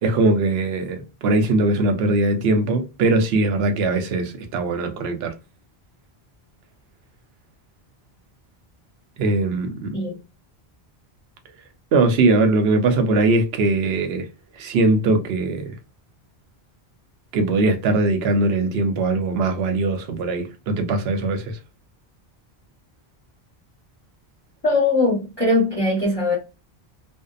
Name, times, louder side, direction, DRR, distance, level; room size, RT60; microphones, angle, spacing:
voice 1, 0.0-5.3 9.2-10.0 11.9-14.3 14.5-15.7 17.3-21.6, right 2 dB, 75° right, 0.8 m, -21 dB
voice 2, 24.6-26.4, left 2 dB, 25° left, 0.9 m, -20 dB
2.6 x 2.1 x 2.3 m
omnidirectional pair, 1.1 m